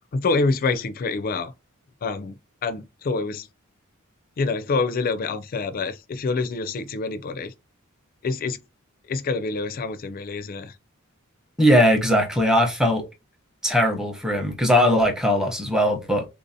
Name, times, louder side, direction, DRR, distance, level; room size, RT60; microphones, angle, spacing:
voice 1, 0.1-1.5 2.0-2.4 2.6-3.5 4.4-7.5 8.2-8.6 9.1-10.7, left 3 dB, 45° left, 0.4 m, -26 dB
voice 2, 11.6-13.0 13.6-16.3, equal, 5° right, 0.7 m, -20 dB
3.7 x 2.6 x 2.6 m
head